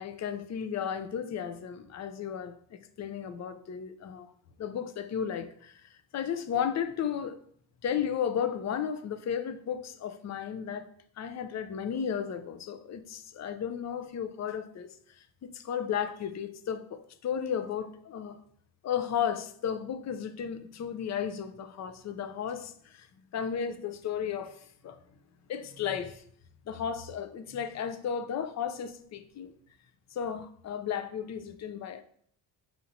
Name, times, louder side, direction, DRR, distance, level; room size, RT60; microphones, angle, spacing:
voice 1, 0.0-4.3 4.6-7.4 7.8-10.9 11.2-14.9 15.2-18.4 18.8-23.1 23.3-25.0 25.5-26.2 26.7-29.5 30.1-32.0, left 8 dB, 40° left, 0.4 m, -34 dB
5.6 x 2.8 x 2.6 m
cardioid pair, 75°, 46 cm